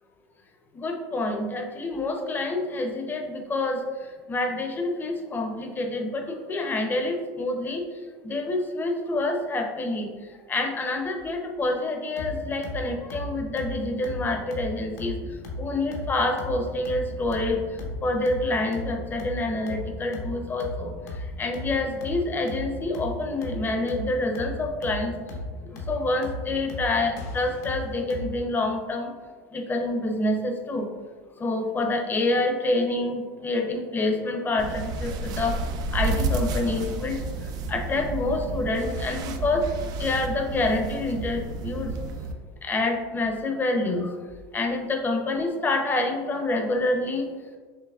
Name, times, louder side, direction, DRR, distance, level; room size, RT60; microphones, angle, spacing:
voice 1, 0.7-3.8 4.3-7.8 8.2-10.1 10.5-15.2 15.6-17.6 18.0-20.9 21.4-25.1 25.9-29.1 29.5-30.9 31.4-35.5 35.9-37.2 37.7-39.6 40.0-41.9 42.6-44.1 44.5-47.2, left 2 dB, 25° left, 3 dB, 0.7 m, -27 dB
sound 1, 12.2-28.4, left 1 dB, 75° left, 0.9 m, -37 dB
sound 2, 34.6-42.3, right 2 dB, 50° right, 0.4 m, -31 dB
5.7 x 3.0 x 2.4 m, 1.5 s
hypercardioid pair, 100°, 9 cm